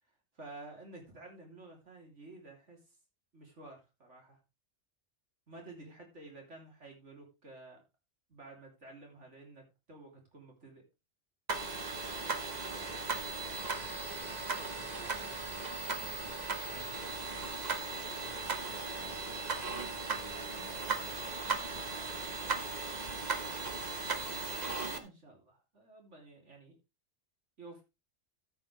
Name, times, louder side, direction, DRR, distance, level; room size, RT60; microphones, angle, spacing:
voice 1, 0.3-2.8 3.3-4.4 5.5-7.8 8.3-10.8 24.8-26.8 27.6-27.8, right 2 dB, 80° right, 1 dB, 3.5 m, -52 dB
sound 1, 11.5-25.0, right 4 dB, 40° right, 1.3 m, -37 dB
voice 2, 12.8-13.2 14.4-15.7 16.0-17.3 18.2-19.3 19.9-22.2, right 1 dB, 5° right, 0 dB, 4.3 m, -58 dB
13.5 x 8.1 x 3.3 m, 0.26 s
omnidirectional pair, 1.2 m